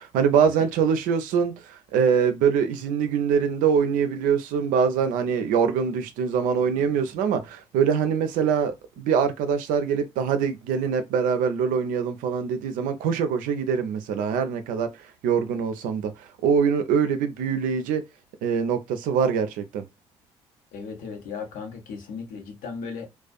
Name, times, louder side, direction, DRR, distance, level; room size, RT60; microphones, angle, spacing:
voice 1, 0.0-14.9 15.2-18.0 18.4-19.8, right 7 dB, 65° right, 0.5 m, -24 dB
voice 2, 20.7-23.1, left 5 dB, 65° left, 0.8 m, -36 dB
2.4 x 2.3 x 2.3 m
hypercardioid pair, 50°, 15 cm